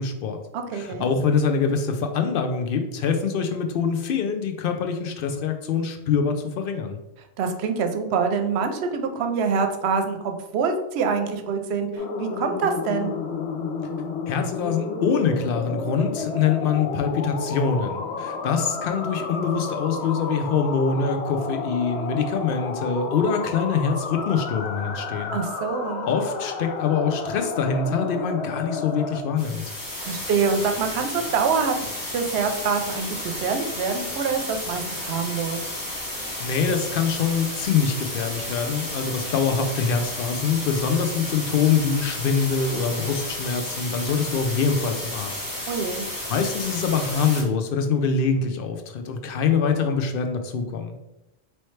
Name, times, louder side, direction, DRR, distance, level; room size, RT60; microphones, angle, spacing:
voice 1, 0.0-0.4 0.7-7.0 14.3-25.4 26.1-29.7 36.4-45.4 46.3-51.0, left 5 dB, 65° left, 6 dB, 0.7 m, -24 dB
voice 2, 0.5-1.1 7.4-13.1 25.3-26.1 30.0-35.6 45.7-46.1, right 5 dB, 75° right, 6 dB, 0.8 m, -25 dB
sound 1, 12.0-29.2, left 4 dB, 90° left, 0.9 m, -31 dB
sound 2, 29.4-47.4, left 1 dB, 20° left, 0.7 m, -32 dB
4.2 x 3.1 x 3.1 m, 0.93 s
omnidirectional pair, 1.1 m